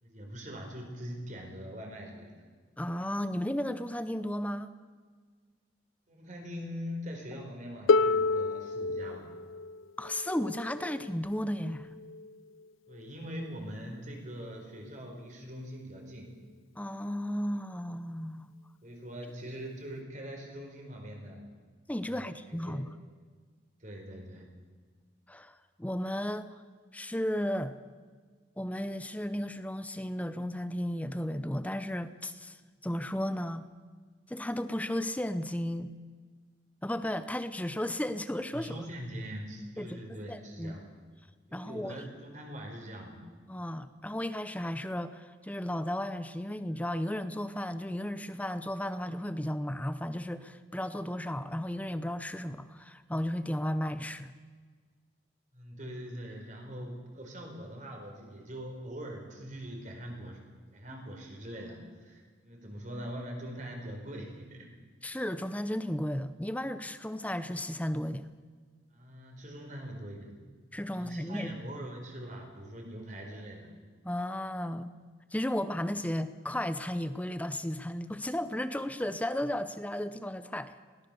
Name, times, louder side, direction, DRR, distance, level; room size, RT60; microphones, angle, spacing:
voice 1, 0.0-2.3 6.1-9.3 12.9-16.4 18.8-21.5 22.0-22.3 22.6-22.8 23.8-24.5 38.5-40.8 41.5-43.3 55.5-60.4 60.7-64.7 68.9-70.3 70.9-73.7, equal, 40° right, 2 dB, 4.6 m, -42 dB
voice 2, 2.8-4.7 10.0-11.9 16.8-18.5 21.9-22.9 25.3-26.5 26.9-27.8 28.6-32.6 32.8-33.6 34.3-36.0 36.8-38.7 39.8-40.8 41.5-42.0 43.5-54.3 65.0-68.3 70.7-71.5 74.0-74.9 75.3-80.7, left 1 dB, 5° left, 12 dB, 0.7 m, -34 dB
Harp, 7.9-13.7 14.7-14.8, left 4 dB, 85° left, 0.5 m, -31 dB
21.0 x 18.0 x 6.9 m, 1.5 s
head